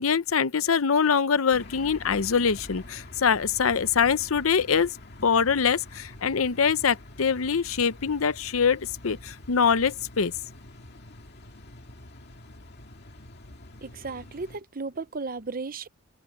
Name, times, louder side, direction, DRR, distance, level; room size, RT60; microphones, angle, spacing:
voice 1, 0.0-4.9 5.2-10.3, left 6 dB, 90° left, 0.7 m, -24 dB
sound 1, 1.5-14.6, left 1 dB, 55° left, 2.1 m, -46 dB
voice 2, 13.8-15.9, right 4 dB, 45° right, 0.8 m, -35 dB
head